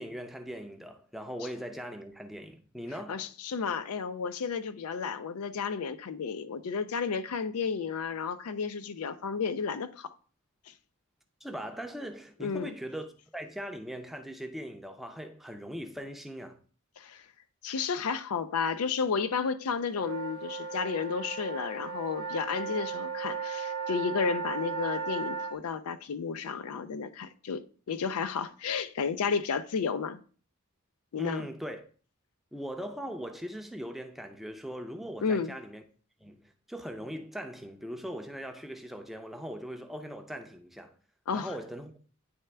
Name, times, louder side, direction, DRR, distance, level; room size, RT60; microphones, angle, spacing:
voice 1, 0.0-3.3 11.4-13.1 13.3-16.6 31.2-31.8 32.5-35.8 36.2-40.9 41.3-41.9, equal, ahead, 0.5 m, -40 dB
voice 2, 3.1-10.1 12.4-12.7 17.0-17.2 17.6-30.2 31.1-31.5 35.2-35.5 41.3-41.5, left 5 dB, 85° left, 0.4 m, -32 dB
sound 1, 19.9-25.5, right 5 dB, 45° right, 0.8 m, -36 dB
9.4 x 3.3 x 3.3 m
head